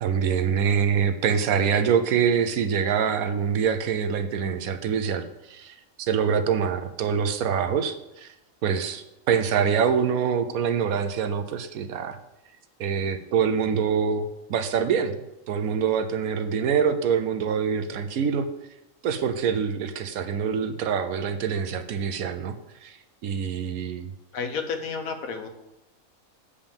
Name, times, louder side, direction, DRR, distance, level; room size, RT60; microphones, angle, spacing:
voice 1, 0.0-8.3 8.6-12.2 12.8-15.1 15.5-18.5 19.0-22.6 22.8-23.0 23.2-24.1, right 7 dB, 80° right, 9 dB, 1.2 m, -25 dB
voice 2, 24.3-25.5, left 5 dB, 75° left, 7 dB, 1.4 m, -31 dB
7.4 x 5.0 x 7.1 m, 0.92 s
omnidirectional pair, 1.5 m